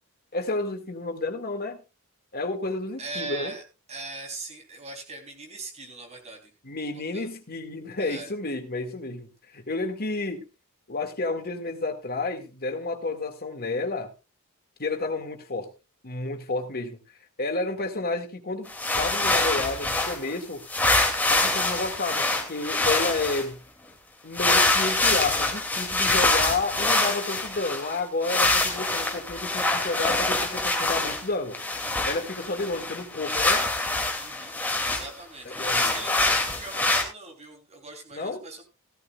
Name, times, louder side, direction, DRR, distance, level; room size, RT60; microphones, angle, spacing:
voice 1, 0.3-1.8 2.3-3.5 6.6-10.5 10.9-14.1 14.8-15.7 16.0-17.0 17.4-18.7 19.0-20.7 21.3-23.6 24.2-31.6 32.1-33.7 35.6-35.9 38.1-38.4, left 3 dB, 45° left, 2.0 m, -30 dB
voice 2, 3.0-3.6 3.9-6.5 6.9-7.3 8.0-8.3 34.2-38.6, right 3 dB, 30° right, 3.5 m, -40 dB
sound 1, 18.7-20.4 20.7-23.4 24.3-28.0 28.2-31.2 31.5-35.1 35.5-37.0, left 2 dB, 10° left, 2.5 m, -25 dB
16.0 x 14.0 x 2.3 m
head